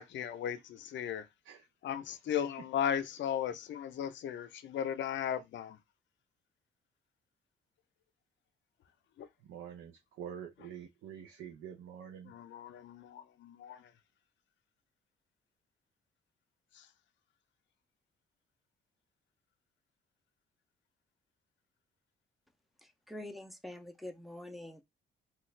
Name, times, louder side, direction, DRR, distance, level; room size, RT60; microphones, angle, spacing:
voice 1, 0.0-1.3 1.8-5.8 9.2-9.3 12.2-13.9 16.7-16.9, left 9 dB, 65° left, 0.6 m, -36 dB
voice 2, 9.4-12.3, right 8 dB, 75° right, 0.6 m, -46 dB
voice 3, 23.1-24.8, left 1 dB, ahead, 0.5 m, -45 dB
3.1 x 2.4 x 3.1 m
cardioid pair, 90°, 20 cm